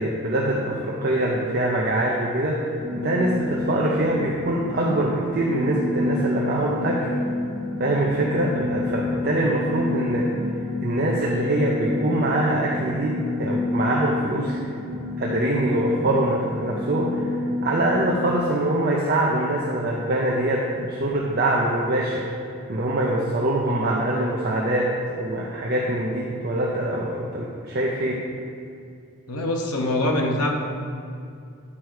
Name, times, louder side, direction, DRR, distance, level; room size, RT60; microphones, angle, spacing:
voice 1, 0.0-7.1 7.8-10.3 10.8-14.6 15.2-17.4 17.6-22.3 22.7-28.2, right 1 dB, 45° right, -3 dB, 0.6 m, -24 dB
sound 1, 2.8-18.4, left 2 dB, ahead, 1.8 m, -29 dB
voice 2, 29.3-30.5, left 1 dB, 85° left, 1 dB, 1.0 m, -24 dB
9.9 x 4.6 x 4.8 m, 2.4 s
head